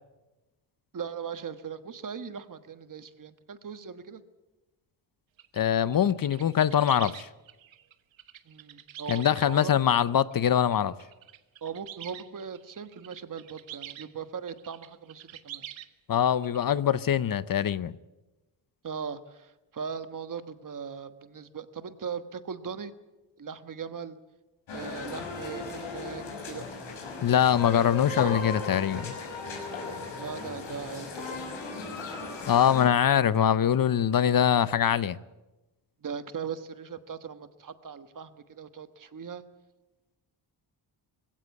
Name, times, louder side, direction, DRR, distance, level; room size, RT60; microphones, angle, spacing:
voice 1, 0.9-4.2 8.4-9.8 11.6-15.7 18.8-22.9 23.4-24.2 24.7-26.7 30.1-31.4 36.0-39.4, right 6 dB, 45° right, 1.3 m, -39 dB
sound 1, 5.4-5.6 5.9-14.1 14.5-15.9 16.1-16.7, right 11 dB, 80° right, 1.3 m, -46 dB
voice 2, 5.5-7.3 9.1-10.9 16.1-17.9 27.2-29.2 32.5-35.2, left 9 dB, 50° left, 0.7 m, -23 dB
sound 2, 24.7-32.9, left 4 dB, 80° left, 5.7 m, -37 dB
20.5 x 16.5 x 8.3 m
cardioid pair, 115°, 46 cm